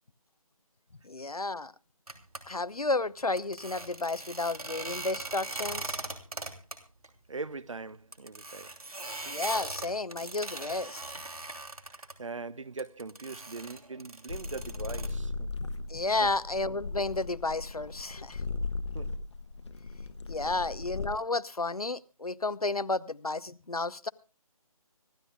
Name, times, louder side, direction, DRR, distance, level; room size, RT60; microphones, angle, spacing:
voice 1, 1.0-1.7 2.5-6.0 9.2-11.0 15.9-18.4 20.3-24.1, left 3 dB, 80° left, 0.9 m, -32 dB
sound 1, 2.1-2.4 3.4-6.8 7.0-7.1 7.5-7.6 8.1-12.1 12.8-15.1, right 2 dB, 75° right, 2.9 m, -40 dB
voice 2, 7.3-8.7 11.8-15.5 16.2-16.3 18.9-19.2 20.4-20.6, right 4 dB, 55° right, 0.9 m, -41 dB
sound 2, 14.3-21.1, left 3 dB, 50° left, 1.0 m, -37 dB
25.0 x 13.5 x 2.3 m
figure-of-eight pair, 150°, 19 cm